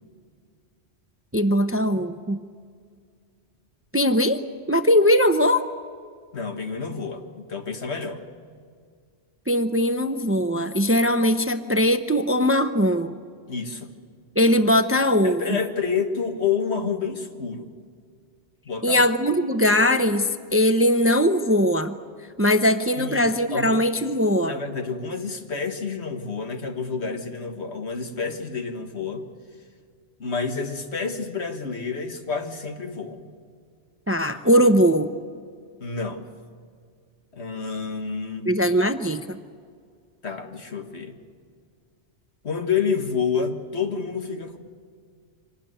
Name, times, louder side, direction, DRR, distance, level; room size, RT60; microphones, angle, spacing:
voice 1, 1.3-2.4 3.9-4.4 4.7-5.6 9.5-13.2 14.4-15.6 18.8-22.0 22.4-24.5 34.1-35.1 38.5-39.4, equal, 15° right, 9 dB, 0.7 m, -20 dB
voice 2, 6.3-8.2 13.5-13.9 15.2-17.7 18.7-19.0 23.0-23.2 23.5-23.8 24.4-29.2 30.2-33.3 35.8-36.2 37.3-38.5 40.2-41.2 42.4-44.6, left 5 dB, 70° left, 5 dB, 1.9 m, -29 dB
25.0 x 19.0 x 9.2 m, 2.1 s
omnidirectional pair, 1.2 m